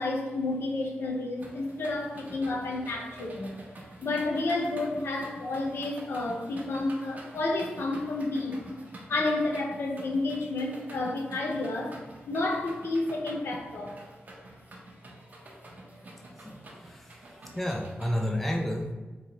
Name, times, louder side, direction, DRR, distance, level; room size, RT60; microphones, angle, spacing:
voice 1, 0.0-3.6 4.0-8.6 9.1-13.9, left 2 dB, 80° left, 1 dB, 0.6 m, -30 dB
sound 1, 1.4-18.3, right 1 dB, 45° right, 0.7 m, -48 dB
voice 2, 16.8-17.2 17.5-18.9, equal, 5° left, 1 dB, 0.3 m, -30 dB
3.5 x 3.1 x 2.9 m, 1.3 s
wide cardioid pair, 115°, 4 cm